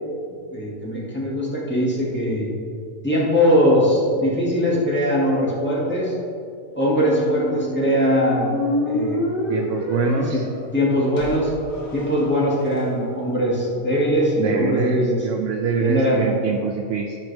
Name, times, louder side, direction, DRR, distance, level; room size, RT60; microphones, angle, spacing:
voice 1, 0.5-2.5 3.0-6.1 6.7-8.5 8.9-9.2 10.2-10.4 10.7-11.5 11.9-15.2 15.8-16.3, equal, 10° left, -6 dB, 2.0 m, -21 dB
sound 1, 6.9-12.8, left 1 dB, 80° left, 1.7 m, -28 dB
voice 2, 9.5-10.4 14.4-17.2, right 5 dB, 75° right, 2 dB, 0.9 m, -24 dB
12.5 x 6.3 x 3.4 m, 2.4 s
omnidirectional pair, 1.4 m